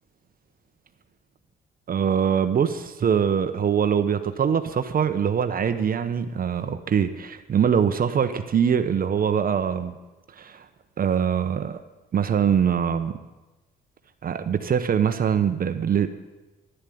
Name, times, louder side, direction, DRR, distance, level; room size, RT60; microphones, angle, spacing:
voice 1, 1.9-9.9 10.4-10.7 11.0-11.8 12.1-13.2 14.2-16.1, right 7 dB, 45° right, 9 dB, 0.9 m, -23 dB
12.0 x 11.5 x 8.5 m, 1.1 s
cardioid pair, 90°, 20 cm